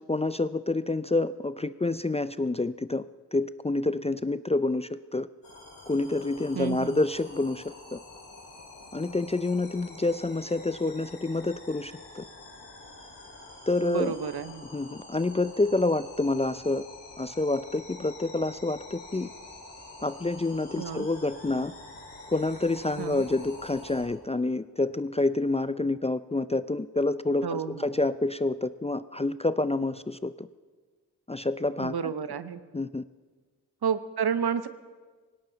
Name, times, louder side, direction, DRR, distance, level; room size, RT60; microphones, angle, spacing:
voice 1, 0.1-3.0 3.3-5.3 5.9-8.0 8.9-12.2 13.7-14.1 14.7-16.8 17.2-19.3 20.0-21.7 22.3-30.5 31.3-32.1 32.7-33.0, left 2 dB, 15° left, 14 dB, 0.4 m, -28 dB
sound 1, 5.4-24.0, left 2 dB, 85° left, 6.1 m, -47 dB
voice 2, 6.5-7.0 13.8-14.6 20.8-21.1 23.0-23.2 27.4-27.9 31.8-32.6 33.8-34.7, right 7 dB, 65° right, 12 dB, 0.9 m, -30 dB
18.0 x 17.5 x 4.0 m, 1.5 s
cardioid pair, 40°, 42 cm